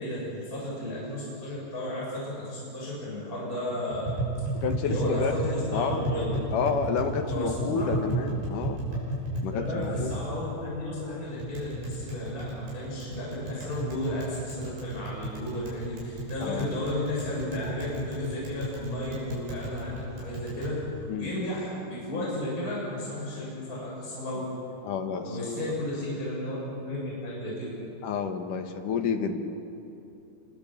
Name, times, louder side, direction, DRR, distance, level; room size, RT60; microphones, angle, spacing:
voice 1, 0.0-4.2 4.8-6.4 7.3-7.9 9.5-20.8 21.1-24.4 25.2-27.7, left 1 dB, 20° left, -6 dB, 7.2 m, -33 dB
Tap, 3.9-20.7, right 1 dB, 80° right, 8.5 m, -34 dB
voice 2, 4.5-5.3 5.7-6.1 6.5-8.8 9.4-10.1 16.4-16.7 21.1-21.3 22.1-22.3 24.8-25.5 28.0-29.4, left 6 dB, 60° left, 5 dB, 2.9 m, -30 dB
28.5 x 23.5 x 7.5 m, 2.8 s
omnidirectional pair, 4.5 m